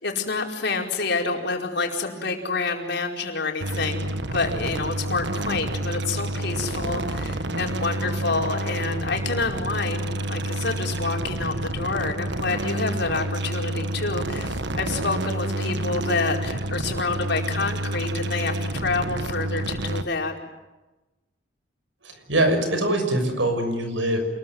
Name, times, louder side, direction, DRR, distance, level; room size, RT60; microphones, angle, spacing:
voice 1, 0.0-20.3, left 3 dB, 65° left, 2 dB, 4.8 m, -28 dB
sound 1, 3.6-20.0, right 1 dB, 65° right, 1.6 m, -29 dB
voice 2, 22.0-24.2, right 1 dB, 85° right, 6 dB, 6.6 m, -23 dB
28.0 x 21.0 x 9.6 m, 1.1 s
head